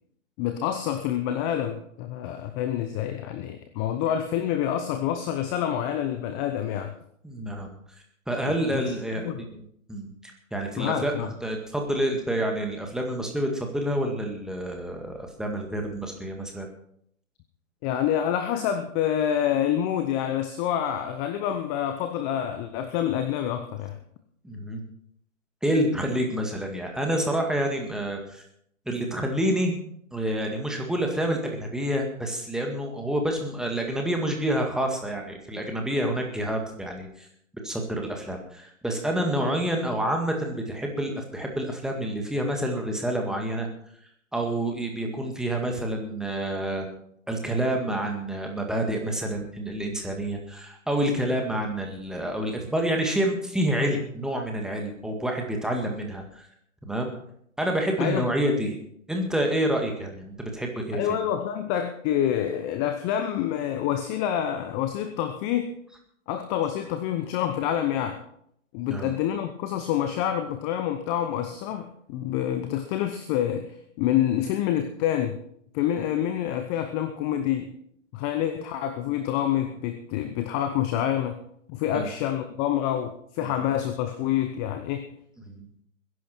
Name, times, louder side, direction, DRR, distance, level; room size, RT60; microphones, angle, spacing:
voice 1, 0.4-6.9 8.5-8.9 9.2-9.4 10.8-11.3 17.8-24.0 58.0-58.2 60.9-65.7 66.3-68.2 68.7-75.4 75.7-77.8 78.1-81.4 81.7-85.1, left 10 dB, 20° left, 9 dB, 0.7 m, -27 dB
voice 2, 7.2-7.7 8.3-9.6 9.9-16.7 24.4-24.8 25.6-28.4 28.9-29.8 30.1-37.3 37.6-43.7 44.3-46.9 47.3-56.4 56.8-57.1 57.6-58.8 59.1-61.0 68.9-69.1 81.9-82.1 85.5-85.7, right 1 dB, ahead, 2 dB, 1.9 m, -28 dB
21.0 x 11.0 x 4.5 m, 0.70 s
figure-of-eight pair, 130°, 40 cm